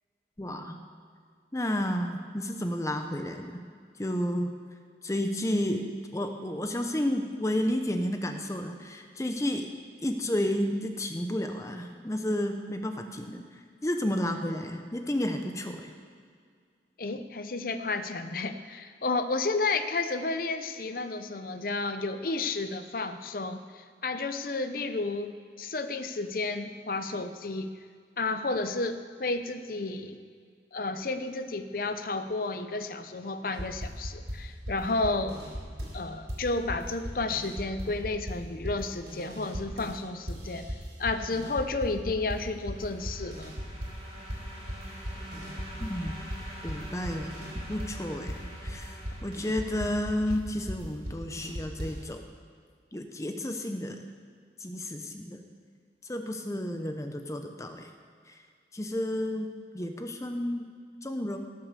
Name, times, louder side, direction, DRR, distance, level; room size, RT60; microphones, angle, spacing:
voice 1, 0.4-0.8 1.5-3.5 4.0-4.5 5.0-5.8 6.1-9.7 10.0-13.4 13.8-15.9 45.8-46.2 46.6-52.3 52.9-54.0 54.6-55.4 56.1-57.9 58.7-59.5 59.7-60.7 61.0-61.4, left 1 dB, 15° left, 5 dB, 0.7 m, -31 dB
voice 2, 17.0-27.8 28.2-30.2 30.7-35.4 35.9-40.7 41.0-43.5, left 3 dB, 50° left, 9 dB, 0.7 m, -32 dB
sound 1, 33.5-36.0 36.3-40.0 40.3-44.0 44.3-52.1, equal, 90° right, 4.0 m, -38 dB
sound 2, 42.1-50.7, equal, 35° right, 3.3 m, -46 dB
17.0 x 6.7 x 6.8 m, 2.1 s
head